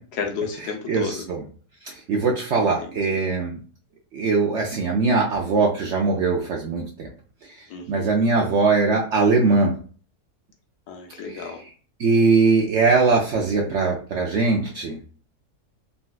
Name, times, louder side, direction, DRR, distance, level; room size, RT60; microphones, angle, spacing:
voice 1, 0.1-1.3 2.6-3.2 7.7-8.2 10.9-11.6, left 5 dB, 80° left, 3 dB, 1.2 m, -32 dB
voice 2, 0.9-1.4 2.1-3.6 4.1-7.1 7.9-9.7 11.4-11.5 12.0-15.0, right 4 dB, 70° right, -1 dB, 0.7 m, -21 dB
3.9 x 2.2 x 2.3 m, 0.41 s
omnidirectional pair, 1.7 m